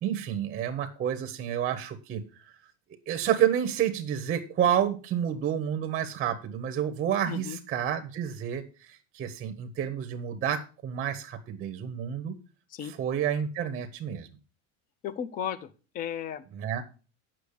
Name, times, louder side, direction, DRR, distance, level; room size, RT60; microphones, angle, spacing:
voice 1, 0.0-2.2 3.1-12.4 12.9-14.3 16.5-16.8, right 9 dB, 20° right, 6 dB, 0.7 m, -29 dB
voice 2, 7.3-7.6 12.7-12.9 15.0-16.4, left 9 dB, 20° left, 15 dB, 0.4 m, -35 dB
8.4 x 6.1 x 6.4 m, 0.35 s
cardioid pair, 170°, 39 cm